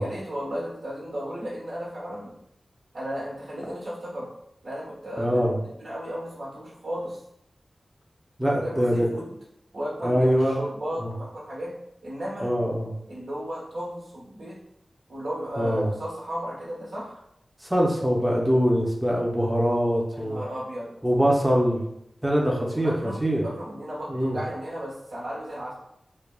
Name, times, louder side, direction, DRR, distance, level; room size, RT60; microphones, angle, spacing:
voice 1, 0.0-2.3 2.9-4.3 4.6-7.2 8.4-9.3 9.7-11.7 12.0-12.5 13.1-14.6 15.1-17.2 20.1-20.9 22.6-25.7, equal, 80° right, -7 dB, 1.1 m, -34 dB
voice 2, 5.2-5.6 8.4-9.1 10.0-10.6 11.0-11.1 12.4-12.9 15.6-15.9 17.6-20.4 21.0-21.8 22.2-23.5 24.1-24.4, equal, 10° right, -2 dB, 0.6 m, -23 dB
3.2 x 2.1 x 2.3 m, 0.77 s
cardioid pair, 40°, 0 cm